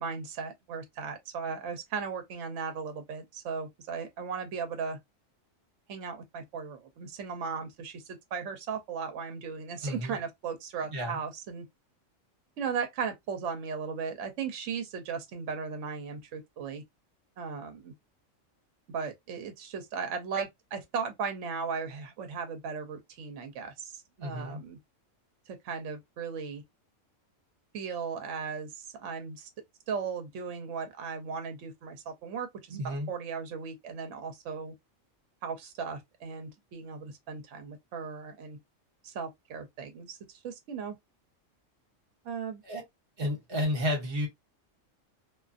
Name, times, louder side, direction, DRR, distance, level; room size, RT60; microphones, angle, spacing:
voice 1, 0.0-5.0 5.9-8.0 8.3-11.6 12.6-16.8 17.4-17.9 18.9-24.8 25.5-26.6 27.7-29.5 29.9-34.7 35.4-38.6 39.0-40.9 42.2-42.6, right 6 dB, 75° right, 1.0 m, -37 dB
voice 2, 9.8-10.2 10.9-11.2 24.2-24.6 32.7-33.1 42.6-42.8 43.2-44.3, left 1 dB, 50° right, 1.2 m, -31 dB
2.5 x 2.4 x 2.4 m
omnidirectional pair, 1.3 m